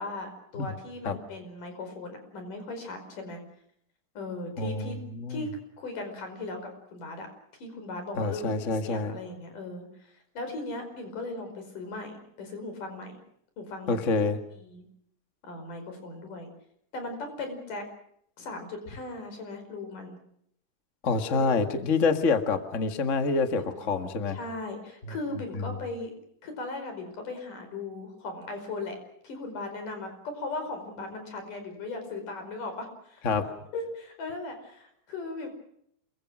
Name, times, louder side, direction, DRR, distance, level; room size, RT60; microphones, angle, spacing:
voice 1, 0.0-3.4 4.1-5.0 5.3-5.5 5.8-7.3 7.6-13.2 13.6-14.0 14.6-14.8 15.4-16.5 16.9-17.8 18.4-20.2 21.3-21.6 23.6-26.1 26.4-29.0 29.2-33.3 33.7-35.5, left 2 dB, 80° left, 6 dB, 6.7 m, -38 dB
voice 2, 4.6-5.4 8.2-9.2 13.9-14.4 21.0-24.4 25.7-25.8 33.2-33.5, left 4 dB, 30° left, 7 dB, 1.7 m, -27 dB
27.5 x 23.5 x 6.3 m, 0.71 s
omnidirectional pair, 3.7 m